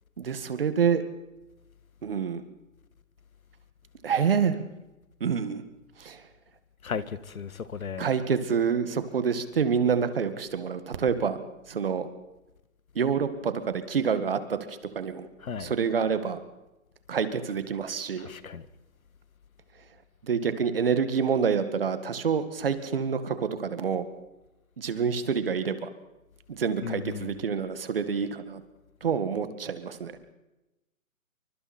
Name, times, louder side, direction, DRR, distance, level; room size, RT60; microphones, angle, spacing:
voice 1, 0.2-1.0 2.0-2.4 4.0-4.6 5.2-5.6 6.0-6.2 8.0-11.4 11.7-12.1 13.0-15.3 15.6-16.4 17.1-18.3 20.2-24.0 24.8-25.9 26.5-28.6 29.0-30.1, right 6 dB, 40° right, 2.0 m, -27 dB
voice 2, 6.8-8.1 15.4-15.7 18.2-18.6 26.8-27.4, left 6 dB, 80° left, 1.7 m, -35 dB
28.0 x 24.5 x 4.4 m
hypercardioid pair, 175°, 41 cm